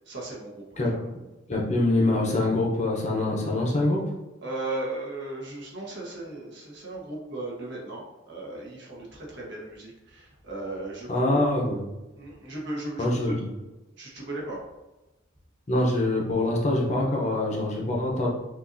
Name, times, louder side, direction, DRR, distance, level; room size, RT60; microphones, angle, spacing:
voice 1, 0.1-0.6 4.4-11.4 12.2-13.4 14.0-14.6, right 2 dB, 55° right, -3 dB, 1.2 m, -36 dB
voice 2, 1.5-4.0 11.1-11.8 13.0-13.5 15.7-18.3, left 2 dB, 35° left, -2 dB, 0.8 m, -24 dB
5.8 x 2.6 x 2.7 m, 1.0 s
head